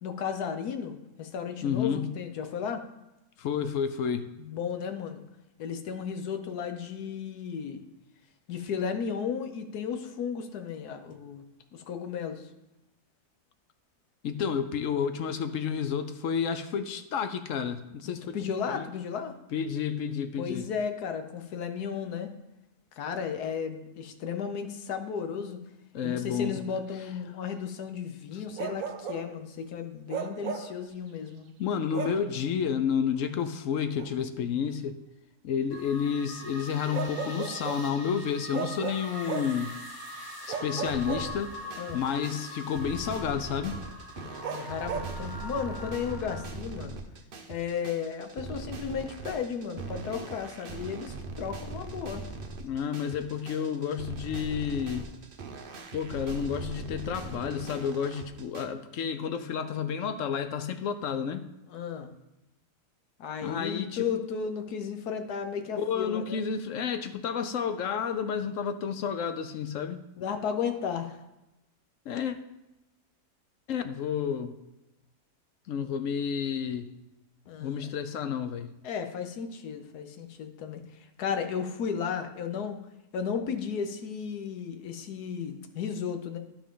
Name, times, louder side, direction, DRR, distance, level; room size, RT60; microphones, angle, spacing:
voice 1, 0.0-2.8 4.4-5.2 5.6-7.8 8.5-11.4 11.7-12.5 18.2-19.3 20.4-22.3 23.0-25.6 26.0-31.5 40.4-40.6 41.8-42.1 44.2-47.0 47.5-52.2 61.7-62.1 63.2-66.4 70.2-71.2 77.5-77.9 78.8-80.8 81.2-82.8 83.1-86.4, left 7 dB, 85° left, 7 dB, 1.4 m, -34 dB
voice 2, 1.6-2.1 3.4-4.3 14.2-18.4 18.7-18.9 19.5-20.7 25.9-26.6 28.3-28.4 31.6-35.0 35.4-39.7 40.5-41.5 41.9-43.8 52.6-55.1 55.9-61.5 63.4-64.1 65.8-70.0 72.1-72.4 73.7-74.5 75.7-76.9 77.6-78.7, left 7 dB, 65° left, 9 dB, 0.9 m, -30 dB
Bark, 28.6-29.3 30.1-30.8 31.9-32.3 34.0-34.1 36.9-37.9 38.5-39.6 40.5-41.7 44.4-45.1, right 7 dB, 65° right, 1.1 m, -35 dB
sound 1, 35.7-46.5, left 1 dB, 15° left, 1.3 m, -43 dB
sound 2, 40.8-58.7, right 3 dB, 45° right, 0.8 m, -41 dB
12.5 x 4.9 x 3.8 m, 0.95 s
omnidirectional pair, 1.6 m